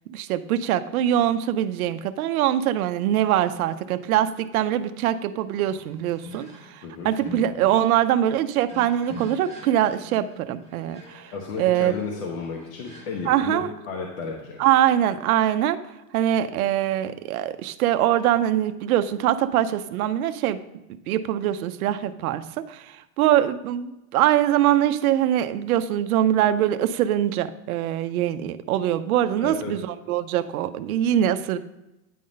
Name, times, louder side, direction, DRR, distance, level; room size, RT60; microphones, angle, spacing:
voice 1, 0.1-6.5 7.0-11.3 11.6-11.9 13.2-13.7 14.6-15.8 16.1-20.6 21.1-31.6, right 11 dB, 65° right, 11 dB, 0.6 m, -23 dB
sound 1, 5.7-13.3, left 2 dB, 15° left, 1.0 m, -45 dB
voice 2, 11.3-14.6 29.4-29.7, left 4 dB, 55° left, 0 dB, 1.2 m, -33 dB
9.4 x 3.9 x 5.1 m, 0.93 s
supercardioid pair, 175°, 48 cm